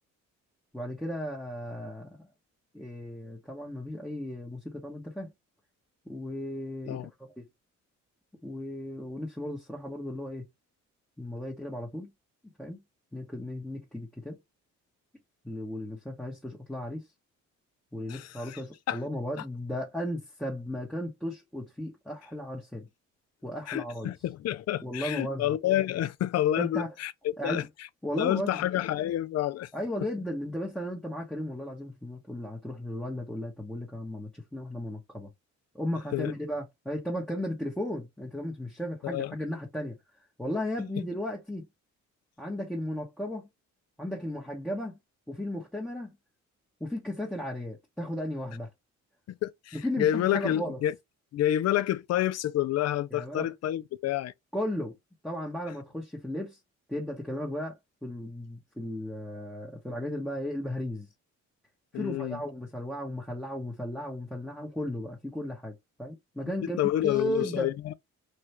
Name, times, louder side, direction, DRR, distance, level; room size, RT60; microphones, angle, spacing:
voice 1, 0.7-2.2 2.7-5.3 6.1-7.5 8.4-10.5 11.2-12.1 12.6-12.8 13.1-14.4 15.4-17.1 17.9-22.9 23.4-24.1 24.8-25.4 26.6-26.9 27.4-27.7 28.0-28.6 29.7-35.3 35.7-40.0 40.4-41.7 42.4-43.5 44.0-45.0 45.3-46.2 46.8-48.7 49.7-50.8 53.1-53.5 54.5-55.0 55.2-56.6 56.9-61.1 61.9-67.7, left 1 dB, 5° left, 0.9 m, -35 dB
voice 2, 18.1-18.6 18.9-19.0 23.7-27.1 27.4-27.6 28.2-29.7 36.1-36.3 39.0-39.3 49.4-50.9 51.3-54.3 61.9-62.4 66.8-67.9, left 12 dB, 60° left, 0.5 m, -28 dB
3.3 x 2.3 x 2.9 m
cardioid pair, 90°, 30 cm